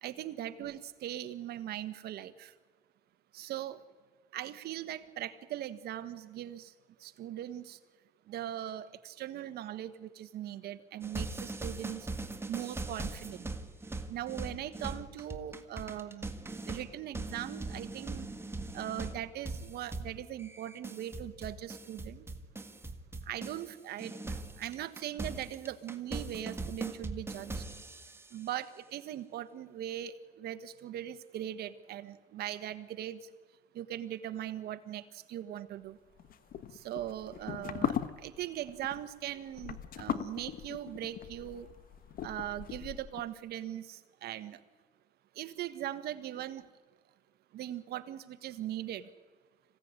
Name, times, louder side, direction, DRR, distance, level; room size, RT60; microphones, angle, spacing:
voice 1, 0.0-2.5 3.3-3.8 4.3-6.7 7.0-7.8 8.3-12.1 12.5-13.5 14.1-16.3 16.7-18.3 18.7-22.3 23.3-27.6 28.3-33.2 33.7-36.0 36.7-38.0 38.2-41.7 42.2-44.6 45.3-46.6 47.5-49.1, right 12 dB, 70° right, 12 dB, 1.4 m, -40 dB
sound 1, 11.0-23.7 24.0-28.4, right 2 dB, 15° right, 1.8 m, -41 dB
sound 2, 36.2-43.2, left 9 dB, 60° left, 1.3 m, -39 dB
26.0 x 16.5 x 9.7 m, 1.5 s
cardioid pair, 110°, 17 cm